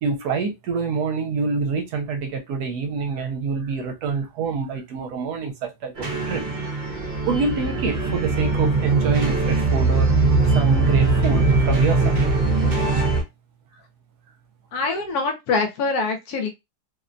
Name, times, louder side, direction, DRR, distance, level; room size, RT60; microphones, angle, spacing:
voice 1, 0.0-6.4 7.3-10.1 10.5-12.4, right 5 dB, 75° right, 1.1 m, -26 dB
sound 1, 6.0-13.2, right 3 dB, 50° right, 0.5 m, -21 dB
voice 2, 14.7-16.5, left 4 dB, 70° left, 1.0 m, -24 dB
2.8 x 2.1 x 2.5 m
omnidirectional pair, 1.8 m